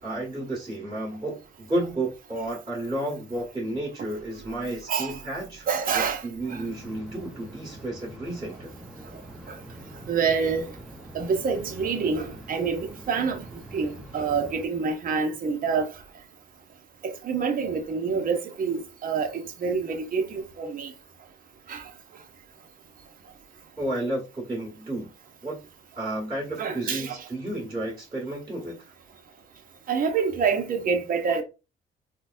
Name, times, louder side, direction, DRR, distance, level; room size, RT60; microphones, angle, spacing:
voice 1, 0.0-8.7 23.8-25.1 25.4-25.6 26.0-28.9, right 1 dB, 20° right, 1.6 m, -32 dB
voice 2, 4.9-5.2 5.7-6.2 6.5-6.6 9.5-9.6 10.1-10.7 11.1-13.4 13.7-15.9 17.0-20.9 21.7-21.8 26.6-27.2 29.9-31.4, right 5 dB, 45° right, 0.7 m, -27 dB
sound 1, 6.5-14.7, right 1 dB, 5° right, 0.7 m, -44 dB
3.8 x 2.2 x 2.5 m
cardioid pair, 90°, 20 cm